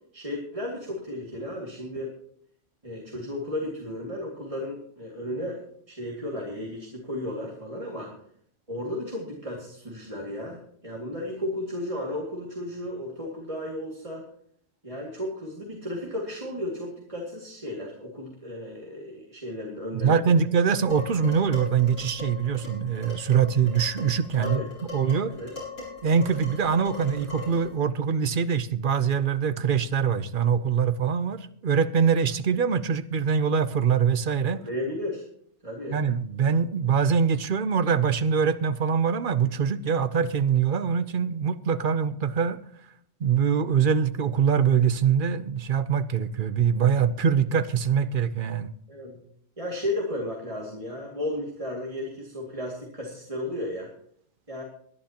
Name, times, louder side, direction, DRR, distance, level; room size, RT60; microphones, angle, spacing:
voice 1, 0.1-2.1 2.8-5.6 5.9-8.1 8.7-14.3 14.8-20.4 24.4-24.7 25.3-25.5 34.5-35.2 35.6-36.0 48.9-49.2 49.6-53.9 54.5-54.6, left 1 dB, 30° right, 2.4 m, -34 dB
voice 2, 19.9-24.6 24.9-25.3 26.0-34.6 35.9-42.6 43.2-48.7, right 7 dB, 55° right, 0.8 m, -23 dB
Dishes pots and pans, 20.9-27.8, left 4 dB, 90° left, 6.8 m, -40 dB
20.5 x 11.5 x 2.9 m
omnidirectional pair, 1.2 m